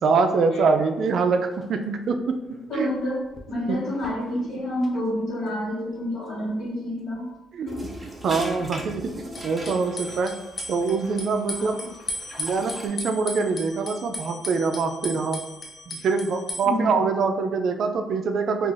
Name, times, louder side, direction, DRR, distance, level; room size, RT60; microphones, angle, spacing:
voice 1, 0.0-2.4 2.7-2.9 3.7-3.8 4.5-4.6 7.5-7.7 8.2-10.4 10.7-11.8 12.4-15.4 15.9-18.7, right 4 dB, 65° right, 7 dB, 0.3 m, -24 dB
sound 1, 0.8-0.9 1.2-1.3 1.5-1.6 2.3-2.7 3.0-4.9 5.2-5.3 9.3-16.6, left 1 dB, 35° left, 0.6 m, -37 dB
voice 2, 2.7-3.2 3.5-7.3 7.6-7.8 11.5-11.9 16.6-16.9, left 1 dB, 75° left, -5 dB, 1.5 m, -28 dB
sound 2, 7.7-12.9, equal, 5° right, 0.7 m, -39 dB
2.4 x 2.4 x 3.8 m, 1.0 s
cardioid pair, 90°, 0 cm